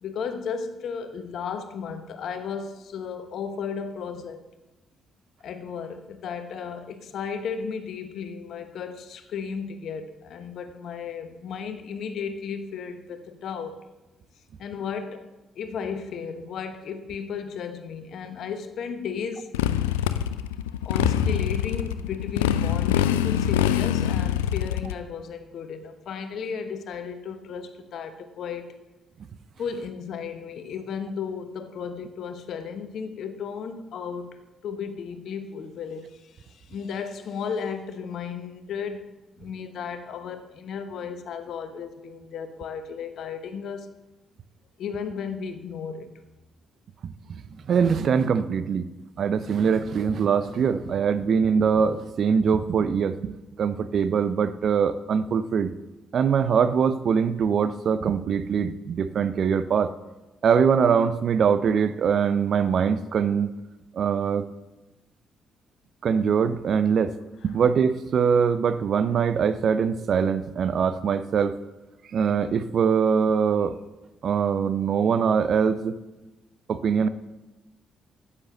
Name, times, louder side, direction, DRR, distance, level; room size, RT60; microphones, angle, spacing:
voice 1, 0.0-4.4 5.4-13.8 14.6-15.3 15.6-19.5 20.8-28.7 29.6-39.1 39.4-43.9 44.8-46.1, left 6 dB, 65° left, 1.0 m, -34 dB
Motorcycle, 19.5-24.9, left 11 dB, 85° left, 0.4 m, -24 dB
voice 2, 47.0-48.9 49.2-55.7 56.1-59.9 60.4-63.5 63.9-64.5 66.0-67.1 67.4-71.6 72.1-73.8 74.2-75.9 76.7-77.1, right 6 dB, 55° right, 0.6 m, -23 dB
9.7 x 8.6 x 6.8 m
hypercardioid pair, 45°, 0 cm